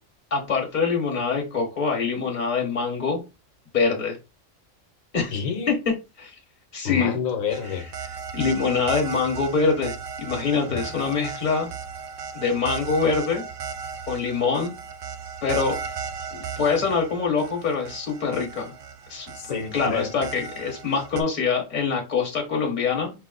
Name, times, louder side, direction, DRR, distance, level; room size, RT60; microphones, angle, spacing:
voice 1, 0.3-3.2 3.7-4.2 5.1-5.3 6.2-6.3 6.7-7.2 8.3-11.7 12.3-13.4 14.1-14.7 15.4-15.8 16.3-18.7 19.1-19.3 19.7-23.1, left 5 dB, 35° left, 1.3 m, -24 dB
voice 2, 5.3-5.8 6.8-7.9 10.7-10.9 19.3-20.1, left 6 dB, 85° left, 1.3 m, -28 dB
sound 1, 7.5-21.2, right 6 dB, 65° right, 0.5 m, -36 dB
5.2 x 2.0 x 3.9 m
omnidirectional pair, 1.3 m